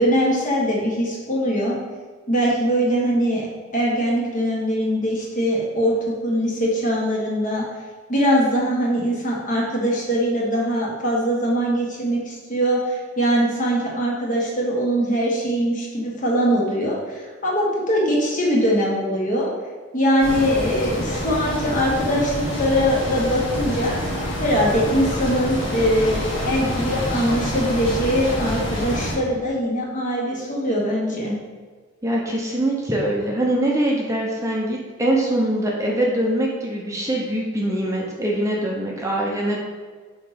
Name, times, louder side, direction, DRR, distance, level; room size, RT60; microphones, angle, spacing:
voice 1, 0.0-1.7 2.3-3.5 3.7-7.6 8.1-19.5 19.9-24.0 24.4-31.3, equal, 40° left, -4 dB, 1.6 m, -22 dB
sound 1, 20.2-29.2, left 1 dB, 70° left, 1.9 m, -27 dB
voice 2, 32.0-39.6, right 1 dB, 15° right, -2 dB, 0.8 m, -23 dB
5.8 x 4.1 x 5.0 m, 1.5 s
head